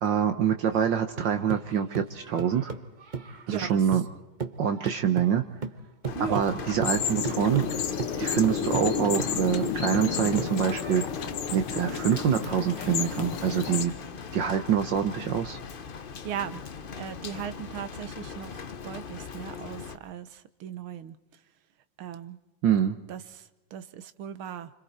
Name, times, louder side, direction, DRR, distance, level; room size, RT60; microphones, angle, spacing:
voice 1, 0.0-2.7 3.5-4.0 4.6-5.4 6.3-7.7 8.2-11.0 11.5-13.9 14.3-15.6 22.6-23.0, right 8 dB, 65° right, 7 dB, 1.6 m, -25 dB
sound 1, 0.7-4.1 4.4-11.1, right 5 dB, 30° right, 0.9 m, -36 dB
voice 2, 3.5-3.8 6.1-6.6 16.2-16.6 17.0-21.2 22.0-22.4 23.1-24.7, right 9 dB, 80° right, 12 dB, 1.9 m, -37 dB
Rain, 6.0-20.0, left 6 dB, 60° left, 0.5 m, -40 dB
sound 2, 6.8-13.9, left 7 dB, 85° left, 2.0 m, -31 dB
30.0 x 26.0 x 4.3 m, 1.1 s
omnidirectional pair, 2.3 m